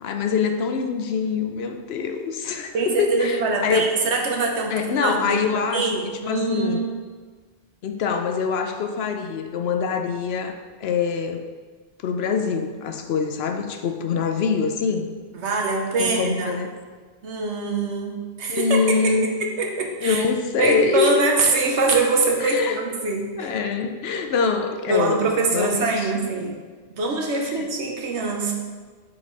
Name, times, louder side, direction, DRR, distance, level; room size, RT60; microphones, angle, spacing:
voice 1, 0.0-3.8 4.7-6.0 6.3-6.9 7.8-11.4 12.0-15.1 16.0-16.7 18.5-19.3 20.0-21.2 22.4-22.8 23.4-25.3 25.5-26.1 27.4-27.7, left 5 dB, 70° left, 6 dB, 0.8 m, -24 dB
voice 2, 2.7-5.4 5.7-6.9 15.3-16.6 17.2-20.2 20.6-23.5 24.9-26.6 27.0-28.5, right 3 dB, 80° right, 1 dB, 1.2 m, -24 dB
6.4 x 4.4 x 4.0 m, 1.5 s
omnidirectional pair, 1.1 m